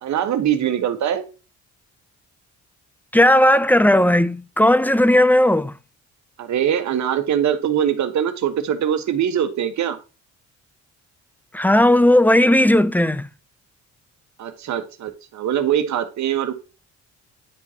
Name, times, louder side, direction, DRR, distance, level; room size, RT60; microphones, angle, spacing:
voice 1, 0.0-1.3 6.4-10.0 14.4-16.5, right 9 dB, 65° right, 1.3 m, -22 dB
voice 2, 3.1-5.7 11.5-13.3, left 1 dB, 5° left, 0.4 m, -15 dB
9.5 x 4.7 x 2.8 m
cardioid pair, 90°, 30 cm